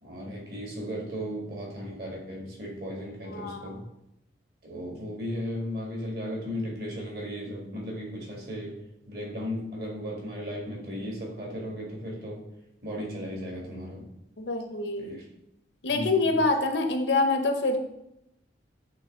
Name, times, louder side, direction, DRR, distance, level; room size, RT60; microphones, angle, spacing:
voice 1, 0.0-3.8 4.6-12.5 12.8-14.1 15.0-15.2 15.9-16.4, equal, 55° right, -2 dB, 1.8 m, -36 dB
voice 2, 3.3-3.8 14.4-15.2 15.8-17.8, left 3 dB, 85° left, 6 dB, 0.8 m, -26 dB
8.2 x 3.1 x 3.7 m, 0.82 s
head